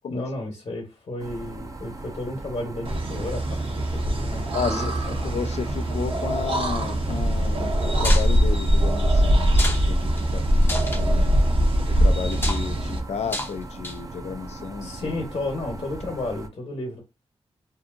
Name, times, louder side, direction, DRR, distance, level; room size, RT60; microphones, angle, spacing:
voice 1, 0.1-5.4 14.8-17.0, left 2 dB, 60° left, 0.9 m, -33 dB
sound 1, 1.2-16.5, right 2 dB, 30° right, 0.4 m, -38 dB
sound 2, 2.8-13.0, equal, 55° right, 0.7 m, -22 dB
voice 2, 4.5-4.9 5.2-11.4 11.9-15.1, left 6 dB, 85° left, 0.4 m, -33 dB
sound 3, 8.0-8.3 9.5-9.8 10.2-10.3 10.6-11.0 12.3-12.6 13.3-13.5 13.8-14.2, left 2 dB, 20° left, 0.5 m, -30 dB
2.7 x 2.6 x 2.4 m
wide cardioid pair, 110°, 11 cm